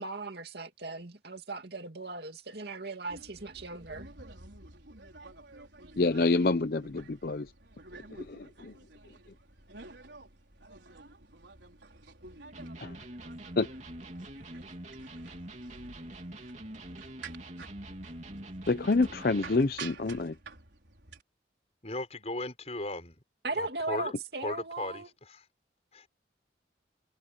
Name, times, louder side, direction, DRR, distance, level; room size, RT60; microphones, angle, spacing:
voice 1, 0.0-4.1 23.4-25.1, right 3 dB, 60° right, 2.5 m, -38 dB
sound 1, 3.1-21.2, right 3 dB, 80° right, 4.7 m, -50 dB
voice 2, 6.0-7.5 8.2-8.7 12.8-13.0 13.6-13.7 18.7-20.4, left 3 dB, 55° left, 0.7 m, -27 dB
Electric guitar, 12.5-19.8, right 1 dB, 40° right, 3.3 m, -44 dB
voice 3, 21.8-23.2 23.6-24.1 24.4-25.0 25.3-25.4 25.9-26.1, left 2 dB, 35° left, 5.8 m, -36 dB
head